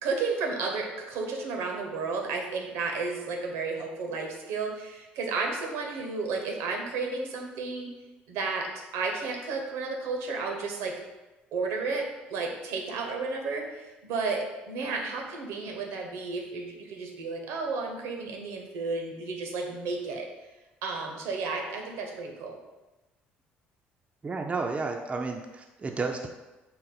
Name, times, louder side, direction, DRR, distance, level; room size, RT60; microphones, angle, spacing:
voice 1, 0.0-7.9 8.3-11.0 11.5-20.3 20.8-22.6, right 4 dB, 70° right, 1 dB, 0.7 m, -32 dB
voice 2, 24.2-26.3, right 4 dB, 25° right, 3 dB, 0.4 m, -32 dB
3.9 x 2.1 x 4.0 m, 1.1 s
hypercardioid pair, 60°, 5 cm